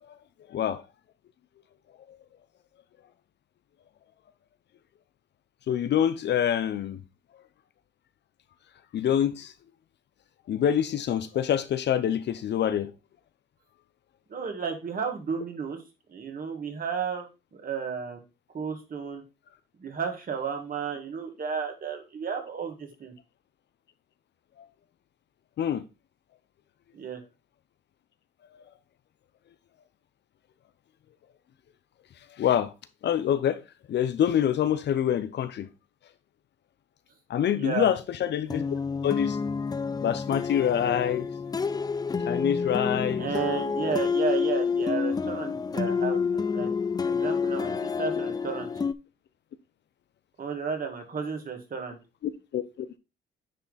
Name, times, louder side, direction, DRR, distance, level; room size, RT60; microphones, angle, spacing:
voice 1, 5.7-7.0 8.9-9.5 10.5-12.9 25.6-25.8 32.4-32.7 33.0-33.6 33.9-35.7 37.3-38.6 39.0-39.4 40.0-41.3 42.3-43.3 52.5-52.9, left 9 dB, 60° left, 0.7 m, -26 dB
voice 2, 14.3-15.8 16.1-18.2 18.5-19.2 19.8-23.1 26.9-27.2 37.6-37.9 43.2-46.7 47.0-48.7 50.4-52.0, right 6 dB, 45° right, 2.1 m, -33 dB
sound 1, 38.5-48.9, left 5 dB, 20° left, 0.4 m, -28 dB
10.0 x 3.4 x 4.1 m
cardioid pair, 90°, 20 cm